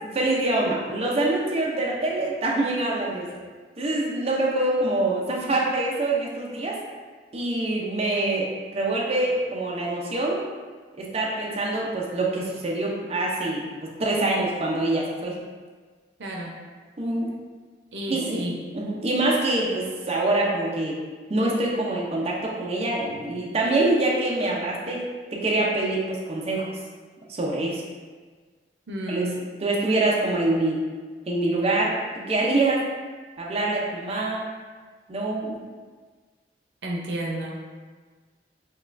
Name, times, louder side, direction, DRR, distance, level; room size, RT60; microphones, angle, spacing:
voice 1, 0.0-3.3 3.8-6.8 7.3-10.4 11.0-15.4 17.0-17.3 18.1-18.4 18.7-21.0 21.3-25.0 25.3-26.8 27.3-27.8 29.1-29.2 29.6-30.8 31.3-32.8 33.4-34.5 35.1-35.6, right 2 dB, 35° right, -3 dB, 0.5 m, -25 dB
voice 2, 16.2-16.6 17.9-18.6 28.9-29.3 36.8-37.6, right 1 dB, 90° right, -1 dB, 0.6 m, -31 dB
5.3 x 2.3 x 2.5 m, 1.4 s
head